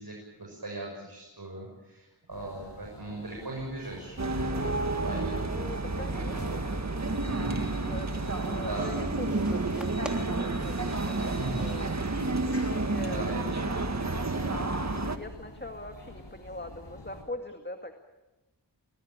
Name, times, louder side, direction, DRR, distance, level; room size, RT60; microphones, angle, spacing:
voice 1, 0.0-5.4 6.1-6.6 7.3-7.7 8.5-9.0 11.3-11.8 13.0-14.7, right 2 dB, 60° right, -1 dB, 7.0 m, -39 dB
sound 1, 2.3-17.2, left 2 dB, 85° left, 7.4 m, -49 dB
sound 2, 4.2-15.2, right 2 dB, 40° right, 1.7 m, -30 dB
voice 2, 5.3-6.7 7.9-12.0 12.7-13.4 14.7-18.0, left 1 dB, 25° left, 5 dB, 2.1 m, -42 dB
sound 3, 8.0-13.0, equal, ahead, 3.3 m, -47 dB
26.5 x 20.0 x 8.9 m, 1.0 s
wide cardioid pair, 55°, 42 cm